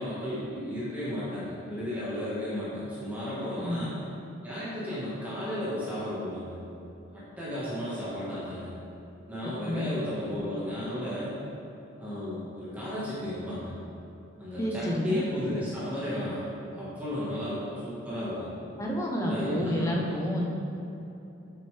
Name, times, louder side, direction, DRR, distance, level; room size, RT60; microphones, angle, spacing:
voice 1, 0.0-4.0 4.4-6.6 7.1-8.7 9.3-11.3 12.0-13.7 14.4-16.4 16.7-18.5 19.2-20.2, left 1 dB, 10° right, -10 dB, 1.5 m, -34 dB
voice 2, 3.6-3.9 9.7-9.9 14.6-15.3 18.8-20.4, equal, 15° left, -2 dB, 0.8 m, -29 dB
7.2 x 6.8 x 3.4 m, 2.8 s
head